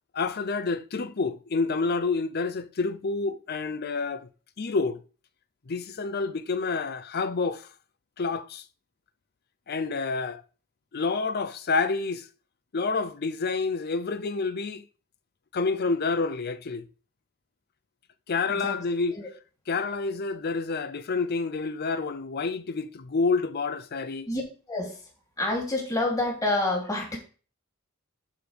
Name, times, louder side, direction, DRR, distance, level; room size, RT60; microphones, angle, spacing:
voice 1, 0.1-4.3 4.6-5.0 5.7-7.7 8.2-8.6 9.7-10.4 10.9-12.3 12.7-14.8 15.5-16.8 18.3-19.2 19.7-24.3, left 4 dB, 50° left, 0.6 m, -28 dB
voice 2, 18.5-18.8 19.1-19.3 24.3-24.4 24.7-25.0 25.4-27.2, left 2 dB, 15° left, 2.8 m, -28 dB
11.5 x 4.9 x 3.4 m
head